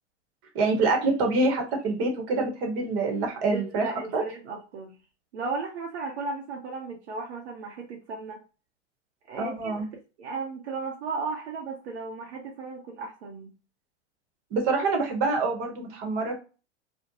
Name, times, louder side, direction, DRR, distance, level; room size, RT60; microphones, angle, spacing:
voice 1, 0.5-3.9 4.1-4.2 9.4-9.9 14.5-16.4, right 3 dB, 40° right, 2 dB, 0.9 m, -26 dB
voice 2, 3.5-4.9 5.3-8.4 9.3-9.7 10.2-13.5, right 4 dB, 65° right, 0 dB, 0.7 m, -35 dB
2.5 x 2.1 x 2.7 m, 0.34 s
hypercardioid pair, 105°, 35 cm